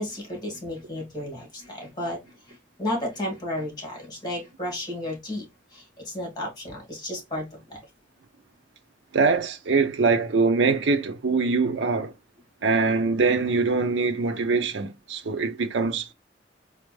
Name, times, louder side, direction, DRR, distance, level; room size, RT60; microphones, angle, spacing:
voice 1, 0.0-2.2 2.8-5.5 5.7-7.8, left 1 dB, 20° left, 1.9 m, -33 dB
voice 2, 9.1-12.1 12.6-16.1, right 4 dB, 85° right, 0.5 m, -23 dB
4.3 x 2.4 x 3.0 m
head